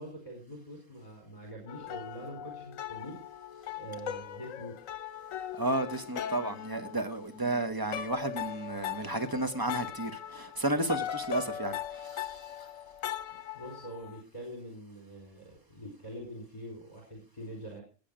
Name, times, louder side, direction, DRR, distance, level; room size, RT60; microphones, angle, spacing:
voice 1, 0.0-3.2 3.8-4.8 13.5-17.8, equal, 30° left, 4.4 m, -44 dB
sound 1, 1.7-7.6 7.9-14.2, left 10 dB, 75° left, 1.2 m, -39 dB
voice 2, 5.5-12.4, right 1 dB, 15° right, 1.1 m, -32 dB
16.0 x 8.9 x 5.1 m
omnidirectional pair, 1.4 m